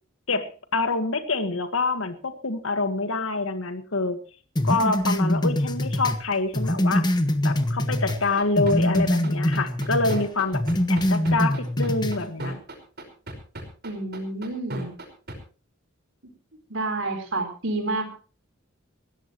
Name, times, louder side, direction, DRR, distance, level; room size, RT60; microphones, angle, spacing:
voice 1, 0.3-4.2 4.6-7.1 7.4-10.6 10.9-12.6, left 3 dB, 75° left, 8 dB, 1.7 m, -26 dB
sound 1, 4.6-8.2 8.6-10.2 10.5-12.2, left 1 dB, 20° left, 1.3 m, -24 dB
sound 2, 7.9-15.4, right 1 dB, 50° right, 5.2 m, -35 dB
voice 2, 13.8-14.9 16.7-18.1, right 2 dB, 65° right, 5 dB, 4.3 m, -29 dB
21.0 x 17.0 x 3.1 m, 0.38 s
head